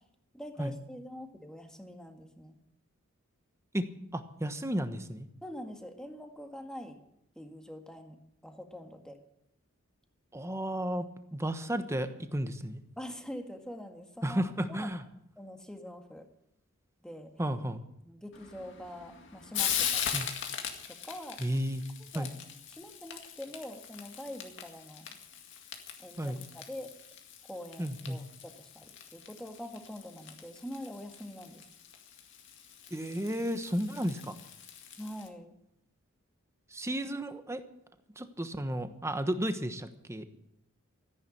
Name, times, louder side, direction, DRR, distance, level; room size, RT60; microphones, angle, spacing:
voice 1, 0.3-2.6 5.4-7.0 7.4-9.2 13.0-14.4 14.7-14.9 15.4-16.3 17.0-17.3 18.0-20.1 20.9-21.5 22.1-22.3 22.7-25.2 26.0-26.9 27.5-31.6 35.0-35.6, equal, 5° left, 5 dB, 1.8 m, -44 dB
voice 2, 4.1-5.3 10.3-12.8 14.2-15.0 17.4-17.8 20.1-20.3 21.4-21.8 22.1-22.3 26.2-26.4 27.8-28.2 32.9-34.3 36.7-37.6 38.2-40.2, equal, 15° right, 9 dB, 1.1 m, -33 dB
Frying (food), 18.3-35.3, left 8 dB, 60° left, 2.1 m, -40 dB
14.0 x 10.5 x 8.6 m, 0.78 s
head